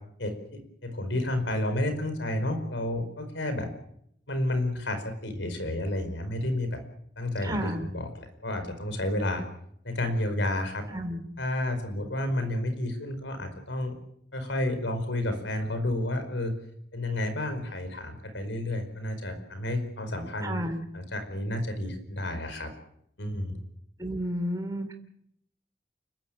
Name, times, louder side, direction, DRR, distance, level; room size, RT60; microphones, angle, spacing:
voice 1, 0.2-3.7 4.3-6.8 7.2-9.4 9.8-10.8 11.4-13.9 14.3-16.5 16.9-20.6 20.9-22.7 23.2-23.6, left 1 dB, 85° left, 9 dB, 4.9 m, -31 dB
voice 2, 7.4-7.9 10.9-11.2 20.4-20.8 24.0-24.9, equal, 20° right, 6 dB, 3.5 m, -31 dB
29.5 x 14.0 x 9.0 m, 0.72 s
head